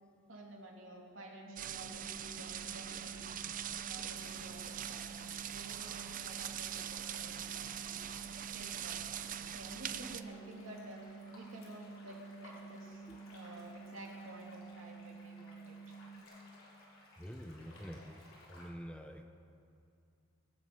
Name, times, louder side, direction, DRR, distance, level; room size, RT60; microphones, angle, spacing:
voice 1, 0.3-3.3 3.8-8.1 8.5-11.0 11.3-16.0, right 1 dB, 75° right, -1 dB, 2.8 m, -52 dB
sound 1, 1.5-16.2, right 5 dB, 35° left, 1.5 m, -51 dB
sound 2, 1.6-10.2, right 10 dB, 40° right, 0.5 m, -42 dB
sound 3, 2.5-18.7, left 1 dB, 80° left, 3.7 m, -60 dB
voice 2, 17.2-18.2 18.5-19.2, equal, 5° left, 5 dB, 0.6 m, -47 dB
23.0 x 9.4 x 5.4 m, 2.4 s
head